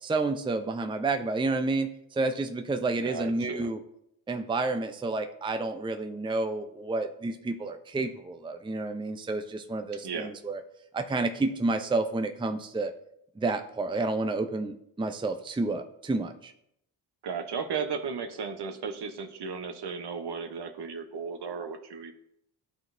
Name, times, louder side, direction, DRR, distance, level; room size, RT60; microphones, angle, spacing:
voice 1, 0.0-3.8 4.3-10.6 10.9-12.9 13.4-16.5, right 3 dB, 10° right, 7 dB, 0.6 m, -30 dB
voice 2, 3.0-3.7 10.0-10.3 17.2-22.1, right 5 dB, 55° right, 7 dB, 1.0 m, -35 dB
11.5 x 3.9 x 2.6 m, 0.75 s
supercardioid pair, 45°, 49 cm